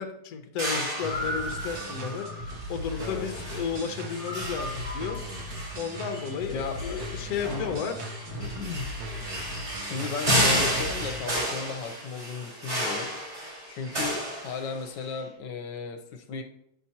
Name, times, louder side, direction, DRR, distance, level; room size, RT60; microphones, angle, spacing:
voice 1, 0.0-5.2 5.8-7.9 9.6-9.7, left 6 dB, 65° left, 6 dB, 1.1 m, -33 dB
sound 1, 0.6-15.1, equal, 40° right, 2.5 m, -32 dB
sound 2, 1.0-11.1, equal, 65° right, 1.4 m, -38 dB
voice 2, 3.0-3.3 6.5-7.0 7.4-7.8 8.4-8.8 9.8-13.1 13.7-16.4, left 5 dB, 80° left, 5 dB, 1.3 m, -35 dB
9.0 x 5.8 x 2.8 m, 0.78 s
omnidirectional pair, 1.9 m